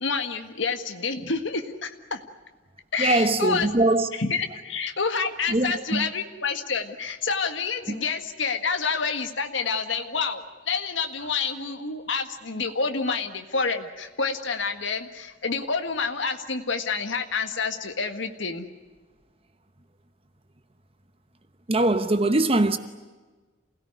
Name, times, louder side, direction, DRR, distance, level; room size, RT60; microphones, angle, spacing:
voice 1, 0.0-2.2 2.9-3.7 4.2-18.7, left 5 dB, 70° left, 1.7 m, -28 dB
voice 2, 3.0-4.1 5.5-6.1 7.9-8.0 13.1-13.2 21.7-22.8, right 2 dB, 30° right, 1.0 m, -22 dB
28.5 x 17.5 x 9.7 m
head